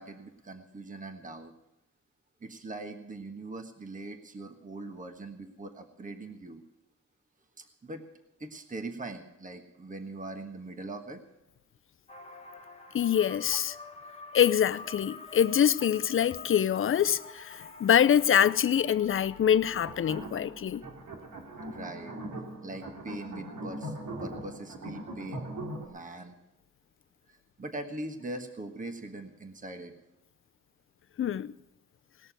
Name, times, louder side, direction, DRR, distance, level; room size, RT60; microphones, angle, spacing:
voice 1, 0.0-1.5 2.4-6.6 7.6-8.0 8.4-11.2 19.9-20.0 21.7-22.2 22.6-23.9 24.2-25.5 25.8-26.3 27.3-29.9, right 2 dB, 25° right, 1.4 m, -41 dB
sound 1, 12.1-20.2, left 4 dB, 20° left, 1.0 m, -47 dB
voice 2, 12.9-13.8 14.3-20.8 31.2-31.5, left 9 dB, 40° left, 0.5 m, -25 dB
sound 2, 19.7-25.9, right 1 dB, 90° right, 2.5 m, -40 dB
19.0 x 6.7 x 9.0 m
wide cardioid pair, 130°, 31 cm